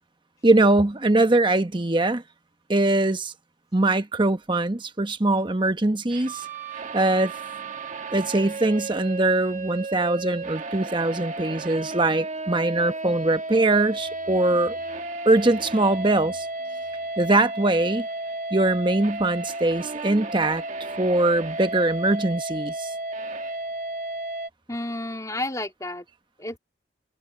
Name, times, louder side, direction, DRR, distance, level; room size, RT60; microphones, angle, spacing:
voice 1, 0.4-2.2 2.7-3.3 3.7-6.5 6.9-7.3 8.1-14.8 15.2-16.5 17.2-18.1 18.5-20.6 21.0-22.9, right 2 dB, 25° right, 1.1 m, -22 dB
sound 1, 6.1-24.5, right 2 dB, 40° right, 1.4 m, -33 dB
voice 2, 24.7-26.1 26.4-26.6, left 1 dB, 15° left, 3.6 m, -31 dB
head